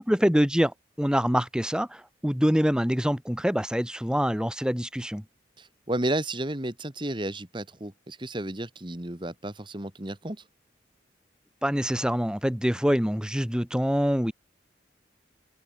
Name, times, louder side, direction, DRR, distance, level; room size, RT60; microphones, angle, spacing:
voice 1, 0.0-5.2 11.6-14.3, equal, 5° right, 1.3 m, -25 dB
voice 2, 5.6-10.4, right 1 dB, 25° right, 1.7 m, -32 dB
open air
head